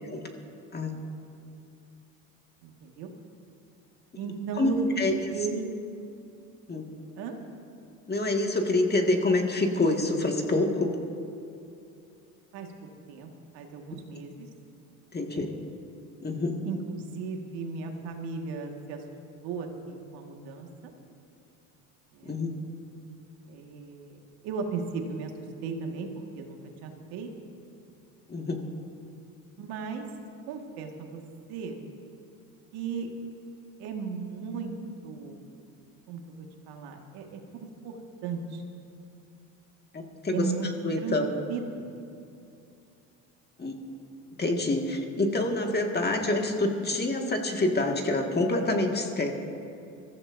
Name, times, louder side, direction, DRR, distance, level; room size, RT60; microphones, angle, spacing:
voice 1, 2.6-3.1 4.2-4.8 5.3-5.7 7.2-7.4 12.5-12.7 13.1-14.5 15.2-15.5 16.6-19.0 19.4-20.9 22.1-22.4 23.5-25.3 25.6-26.1 26.4-27.3 29.6-30.1 30.5-31.2 31.5-31.8 32.7-33.1 33.8-34.7 35.0-35.4 36.1-38.6 40.3-40.7 41.0-41.2 41.5-41.9, right 5 dB, 65° right, 3 dB, 1.9 m, -36 dB
voice 2, 4.6-5.1 6.7-6.8 8.1-11.0 15.1-15.5 16.2-16.6 22.2-22.5 28.3-28.6 39.9-40.5 40.8-41.3 43.6-43.7 44.4-49.3, left 2 dB, 25° left, 2 dB, 1.9 m, -26 dB
23.0 x 14.5 x 2.7 m, 2.6 s
hypercardioid pair, 70°, 41 cm